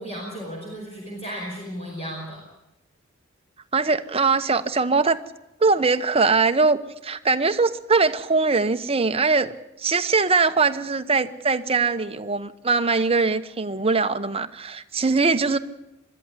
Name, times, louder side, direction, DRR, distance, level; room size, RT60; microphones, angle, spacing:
voice 1, 0.0-2.4, equal, 30° left, -2 dB, 5.1 m, -34 dB
voice 2, 3.7-5.2 5.6-9.5 9.8-15.6, right 4 dB, 30° right, 9 dB, 1.1 m, -21 dB
22.0 x 13.0 x 9.8 m, 0.91 s
head